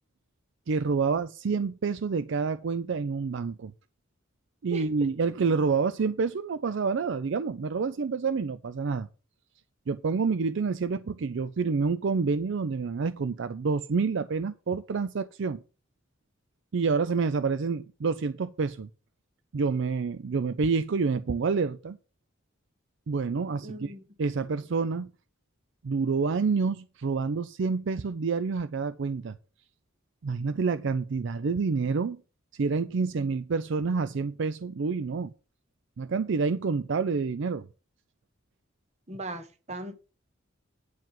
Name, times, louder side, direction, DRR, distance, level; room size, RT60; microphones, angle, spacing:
voice 1, 0.7-3.7 4.6-9.1 9.9-15.6 16.7-18.9 19.5-22.0 23.1-23.9 24.2-25.1 25.8-29.4 30.2-32.2 32.5-35.3 36.0-37.7, right 4 dB, 60° right, 0.4 m, -28 dB
voice 2, 23.6-24.1 39.1-40.0, right 1 dB, 35° right, 1.1 m, -38 dB
9.4 x 4.7 x 7.5 m
head